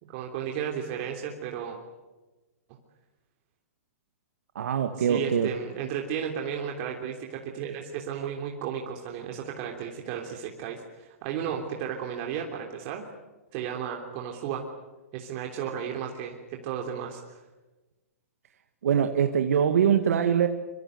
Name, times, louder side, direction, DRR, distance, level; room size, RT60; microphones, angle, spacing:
voice 1, 0.0-1.8 5.0-13.0 13.5-14.7 15.1-17.4, right 8 dB, 40° right, 1 dB, 3.3 m, -34 dB
voice 2, 4.6-5.5 18.8-20.5, right 8 dB, 70° right, 6 dB, 1.9 m, -23 dB
25.0 x 25.0 x 8.2 m, 1.2 s
hypercardioid pair, 125°, 8 cm